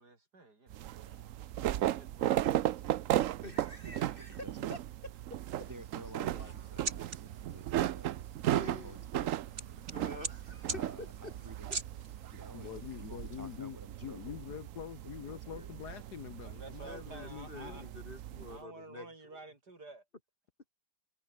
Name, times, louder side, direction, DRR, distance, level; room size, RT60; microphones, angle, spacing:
voice 1, 0.0-3.0 16.4-17.8 18.5-20.0, right 3 dB, 55° right, 5.1 m, -52 dB
sound 1, 0.7-18.6, right 13 dB, 75° right, 0.7 m, -36 dB
voice 2, 3.4-4.4 4.7-5.7 6.2-6.5 7.2-7.3 8.5-9.1 9.7-11.3 16.8-19.1, left 2 dB, 30° left, 2.3 m, -48 dB
voice 3, 4.0-4.8 5.7-8.2 8.4-9.3 10.7-11.7 12.3-12.7 13.0-14.8 15.3-15.7, right 1 dB, 10° right, 5.9 m, -52 dB
sound 2, 5.5-13.6, right 4 dB, 40° right, 2.8 m, -45 dB
voice 4, 12.5-17.9, left 10 dB, 65° left, 1.4 m, -45 dB
omnidirectional pair, 2.0 m